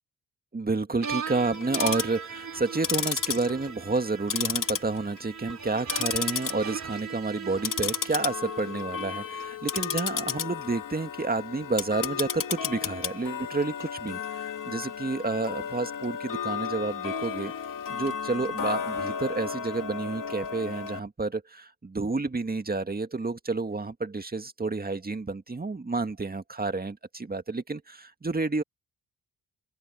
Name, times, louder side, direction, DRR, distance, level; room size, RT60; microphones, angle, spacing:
voice 1, 0.5-17.5 17.9-28.6, right 3 dB, 25° right, 2.0 m, -30 dB
sound 1, 1.0-9.2, right 6 dB, 50° right, 3.3 m, -38 dB
Tick-tock, 1.5-2.2 2.7-4.0 4.3-5.2 5.5-6.5 6.9-7.2 7.6-21.0, left 7 dB, 60° left, 2.9 m, -33 dB
open air
cardioid pair, 65°, 37 cm